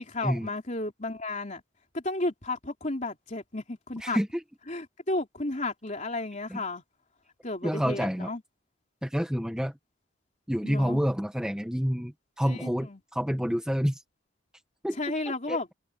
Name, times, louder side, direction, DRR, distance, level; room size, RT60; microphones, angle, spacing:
voice 1, 0.0-1.6 1.9-4.2 4.7-6.8 7.4-8.4 10.6-11.0 12.5-13.0 15.0-15.7, left 2 dB, 35° left, 3.4 m, -33 dB
voice 2, 4.0-4.4 6.5-6.6 7.6-8.3 9.0-9.7 10.5-14.0 14.8-15.0 15.3-15.6, equal, 5° right, 1.3 m, -28 dB
head